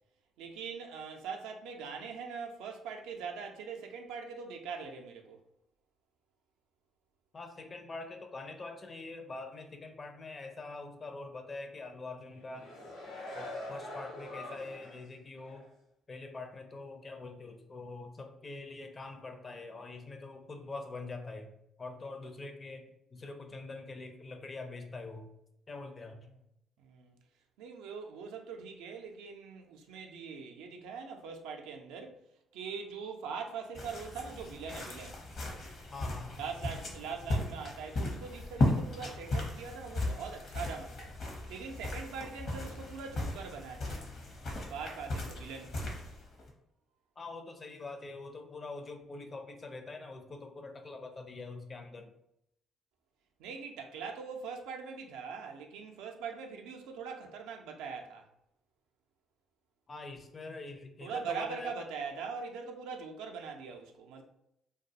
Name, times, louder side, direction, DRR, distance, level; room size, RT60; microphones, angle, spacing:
voice 1, 0.4-5.4 26.8-27.2 27.6-32.1 32.5-35.2 36.4-41.2 41.5-44.1 44.7-45.8 53.4-58.3 61.0-64.2, right 5 dB, 75° right, 0.3 m, -42 dB
voice 2, 7.3-12.7 13.3-15.7 16.1-21.5 21.8-25.3 25.7-26.3 35.9-36.4 47.2-52.1 59.9-61.9, left 3 dB, 40° left, 0.5 m, -44 dB
sound 1, 12.3-15.1 15.5-15.6, left 1 dB, 85° left, 0.8 m, -44 dB
sound 2, 33.7-46.5, left 2 dB, 60° left, 0.8 m, -36 dB
2.3 x 2.2 x 2.7 m
hypercardioid pair, 50°, 0 cm